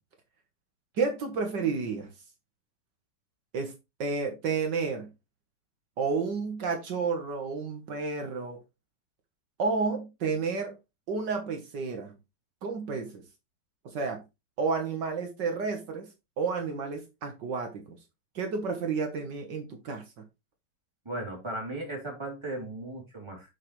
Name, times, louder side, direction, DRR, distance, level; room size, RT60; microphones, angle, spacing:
voice 1, 1.0-2.1 3.5-3.7 4.0-5.1 6.0-8.6 9.6-10.7 11.1-12.1 12.6-13.2 13.9-14.2 14.6-16.1 16.4-18.0 18.4-20.0, right 4 dB, 75° right, 1.9 m, -31 dB
voice 2, 21.0-23.5, right 1 dB, 15° right, 3.2 m, -36 dB
7.3 x 6.3 x 3.2 m
omnidirectional pair, 1.9 m